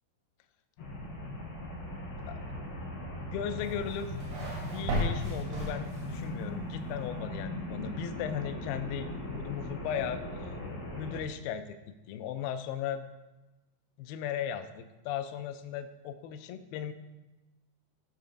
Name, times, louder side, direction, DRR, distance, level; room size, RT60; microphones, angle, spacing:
sound 1, 0.8-11.2, left 1 dB, 70° left, 3.9 m, -39 dB
voice 1, 3.3-4.2 4.7-10.2 10.9-11.8 12.1-13.0 14.0-16.9, left 9 dB, 85° left, 8 dB, 2.0 m, -37 dB
sound 2, 3.6-6.3, equal, 80° right, 4.3 m, -35 dB
15.0 x 5.1 x 2.5 m, 1.1 s
omnidirectional pair, 4.6 m